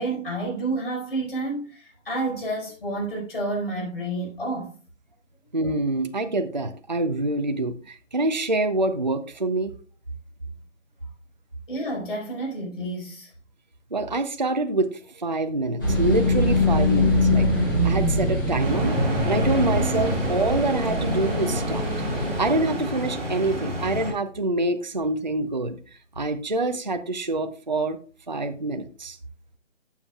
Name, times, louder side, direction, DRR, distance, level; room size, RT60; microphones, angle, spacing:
voice 1, 0.0-4.7 11.7-13.3, right 2 dB, 45° left, 4.9 m, -29 dB
voice 2, 5.5-9.7 13.9-17.5 17.8-19.0 19.2-21.9 22.4-25.8 26.2-28.0 28.3-29.2, right 2 dB, 40° right, 0.5 m, -26 dB
sound 1, 15.8-22.5, left 1 dB, 15° left, 1.9 m, -23 dB
sound 2, 18.6-24.1, equal, 5° right, 1.5 m, -28 dB
15.5 x 7.2 x 2.3 m
hypercardioid pair, 175°, 37 cm